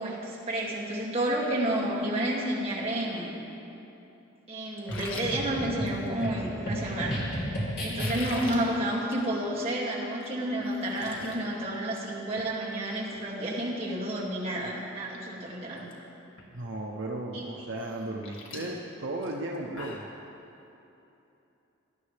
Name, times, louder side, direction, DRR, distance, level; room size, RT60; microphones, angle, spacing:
voice 1, 0.0-3.3 4.5-7.5 7.8-15.9 17.3-17.5, right 1 dB, 30° right, -6 dB, 2.4 m, -30 dB
sound 1, 4.8-6.4 7.9-8.6 9.0-9.3 9.6-9.7 10.2-10.3 10.6-11.4 11.7-12.1 12.4-12.5 14.3-14.4 14.9-15.2 15.5-15.9 16.4-16.5 17.8-20.1, left 3 dB, 80° left, 1.7 m, -42 dB
sound 2, 4.9-8.5, equal, 50° left, 2.8 m, -33 dB
voice 2, 16.5-20.1, right 1 dB, 70° right, 0 dB, 0.8 m, -35 dB
18.0 x 12.0 x 3.4 m, 2.9 s
head